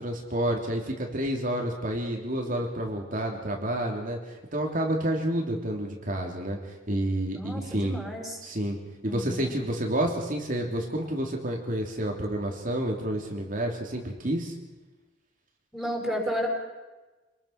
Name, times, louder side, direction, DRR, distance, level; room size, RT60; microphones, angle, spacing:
voice 1, 0.0-4.2 4.5-8.0 8.4-8.8 9.0-14.5, right 1 dB, 45° right, 1 dB, 3.2 m, -29 dB
voice 2, 7.3-8.4 9.1-9.5 15.7-16.5, equal, ahead, -1 dB, 5.8 m, -32 dB
27.0 x 21.0 x 6.0 m, 1.2 s
head